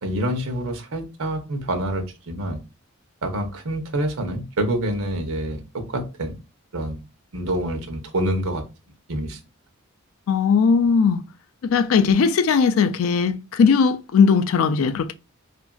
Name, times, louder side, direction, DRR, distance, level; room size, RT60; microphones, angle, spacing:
voice 1, 0.0-2.6 3.2-6.3 6.7-7.0 7.3-8.6 9.1-9.4, right 1 dB, 75° right, 0.7 m, -27 dB
voice 2, 10.3-11.2 11.6-15.1, left 5 dB, 70° left, 0.3 m, -18 dB
2.8 x 2.5 x 2.3 m
head